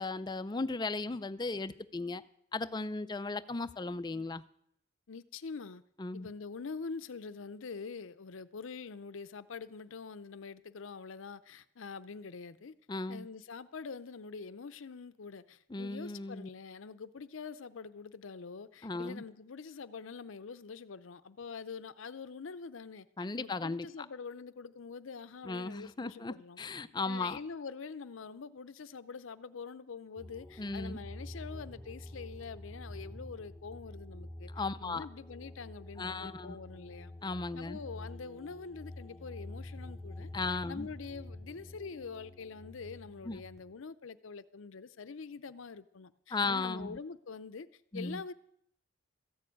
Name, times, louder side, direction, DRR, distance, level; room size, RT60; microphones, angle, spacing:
voice 1, 0.0-2.2 2.5-4.4 6.0-6.3 12.9-13.3 15.7-16.5 18.8-19.2 23.2-23.9 25.4-27.4 30.6-31.0 34.5-35.1 36.0-36.6 37.2-37.8 40.3-40.9 43.2-43.4 46.3-47.0 47.9-48.2, left 3 dB, 20° left, 0.4 m, -36 dB
voice 2, 5.1-5.8 6.1-12.7 13.1-26.6 27.0-34.5 34.8-37.1 37.6-47.7 47.9-48.3, left 5 dB, 75° left, 0.6 m, -45 dB
sound 1, 30.2-43.6, left 1 dB, ahead, 1.0 m, -47 dB
14.0 x 6.9 x 8.5 m
head